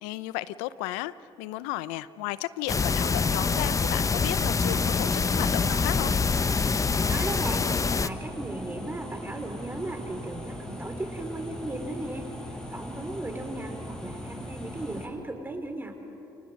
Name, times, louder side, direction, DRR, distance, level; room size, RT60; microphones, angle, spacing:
voice 1, 0.0-6.1, left 16 dB, 80° left, 17 dB, 0.7 m, -34 dB
sound 1, 2.7-8.1, left 4 dB, 30° left, 0.9 m, -25 dB
sound 2, 4.4-15.1, equal, 5° left, 6.5 m, -39 dB
voice 2, 7.1-7.7 8.0-12.3 12.7-15.9, right 2 dB, 20° right, 4 dB, 4.8 m, -36 dB
29.0 x 29.0 x 5.4 m, 2.9 s
hypercardioid pair, 55°, 11 cm